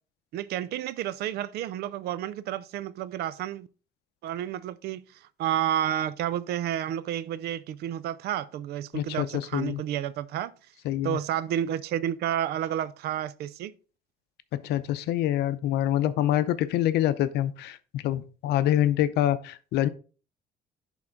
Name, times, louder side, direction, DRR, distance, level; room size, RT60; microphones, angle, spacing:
voice 1, 0.3-3.7 4.2-10.5 11.0-13.7, right 11 dB, 75° right, 0.5 m, -30 dB
voice 2, 8.9-9.8 10.8-11.2 14.5-19.9, left 12 dB, 80° left, 0.6 m, -26 dB
10.5 x 3.7 x 3.8 m
cardioid pair, 110°, 17 cm